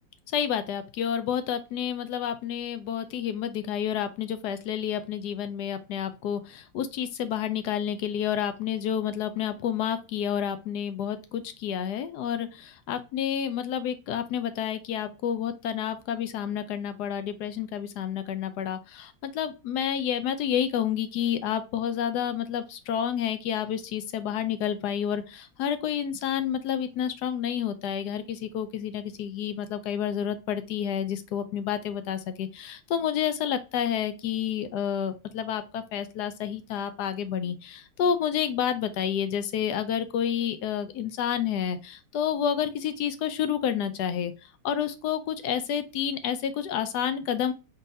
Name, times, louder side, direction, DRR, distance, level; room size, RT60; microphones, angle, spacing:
voice 1, 0.3-44.3 44.6-47.5, left 9 dB, 70° left, 11 dB, 1.0 m, -29 dB
3.9 x 3.8 x 2.6 m, 0.30 s
omnidirectional pair, 2.1 m